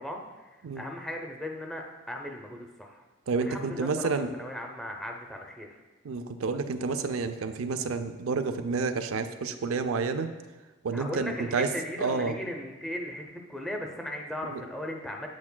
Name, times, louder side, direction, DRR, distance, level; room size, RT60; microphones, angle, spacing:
voice 1, 0.0-3.1 3.4-5.8 10.9-15.3, left 1 dB, 5° left, 1 dB, 0.5 m, -37 dB
voice 2, 3.3-4.3 6.0-10.3 10.8-11.7 12.0-12.3 14.5-14.6, right 4 dB, 85° right, 8 dB, 0.5 m, -29 dB
8.4 x 8.4 x 2.2 m, 1.2 s
head